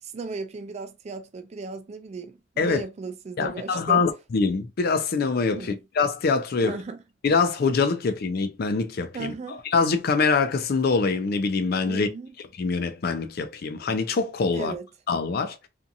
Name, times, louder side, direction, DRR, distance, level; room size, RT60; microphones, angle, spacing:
voice 1, 0.0-4.0 5.5-5.8 6.6-7.0 9.1-9.6 11.9-12.3 14.5-14.9, right 4 dB, 35° right, 0.3 m, -36 dB
voice 2, 3.4-6.8 7.2-9.3 9.6-12.1 12.6-14.7 15.1-15.6, left 4 dB, 50° left, 0.4 m, -24 dB
2.6 x 2.4 x 2.6 m
head